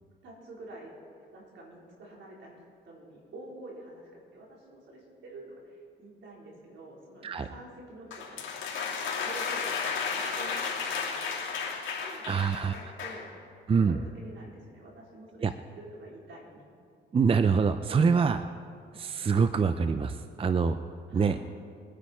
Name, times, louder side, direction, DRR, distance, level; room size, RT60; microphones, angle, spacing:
voice 1, 0.2-0.9 1.3-2.6 2.8-8.5 9.2-11.6 12.0-13.3 13.8-16.7 21.1-21.5, right 2 dB, 70° right, -3 dB, 4.3 m, -48 dB
sound 1, 8.1-13.3, left 5 dB, 75° left, 2.9 m, -33 dB
voice 2, 12.3-12.7 13.7-14.0 15.4-15.5 17.1-18.4 18.9-20.8 21.1-21.3, right 5 dB, 30° right, 10 dB, 0.5 m, -25 dB
22.0 x 9.8 x 4.4 m, 2.3 s
cardioid pair, 90°, 20 cm